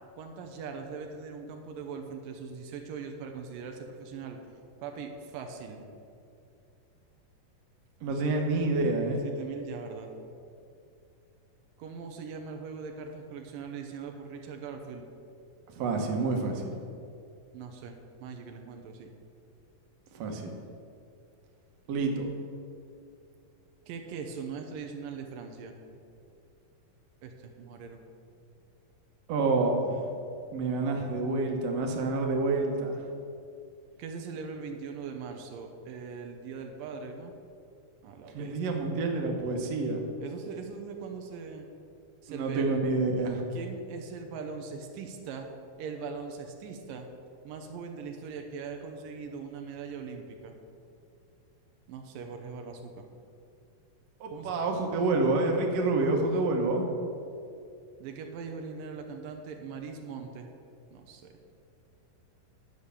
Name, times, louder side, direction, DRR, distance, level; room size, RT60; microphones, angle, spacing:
voice 1, 0.2-4.4 4.8-5.8 8.1-8.4 9.2-10.1 11.8-15.1 17.5-19.1 23.9-25.8 27.2-28.0 34.0-37.3 38.0-38.8 40.2-41.7 42.2-42.7 43.5-45.5 45.8-47.1 47.4-50.6 51.9-53.1 54.3-54.5 58.0-60.5 60.9-61.4, right 5 dB, 85° right, 4 dB, 2.5 m, -41 dB
voice 2, 8.0-9.2 15.8-16.8 20.1-20.5 21.9-22.3 29.3-30.1 30.5-33.1 38.3-40.0 42.3-43.4 54.2-56.9, right 3 dB, 60° right, 1 dB, 2.0 m, -28 dB
11.0 x 6.6 x 7.0 m, 2.5 s
omnidirectional pair, 3.9 m